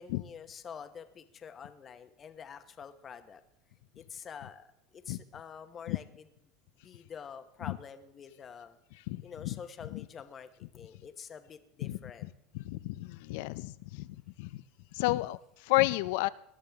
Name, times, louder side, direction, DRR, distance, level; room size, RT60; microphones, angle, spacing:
voice 1, 0.0-3.4 3.9-4.7 4.9-6.0 6.8-8.8 9.2-12.3, left 7 dB, 25° left, 9 dB, 1.0 m, -47 dB
voice 2, 9.1-9.6 9.9-10.0 11.8-12.0 12.5-14.6 14.9-16.3, left 19 dB, 70° left, 17 dB, 0.5 m, -32 dB
20.0 x 11.0 x 3.5 m, 0.78 s
supercardioid pair, 135°, 0 cm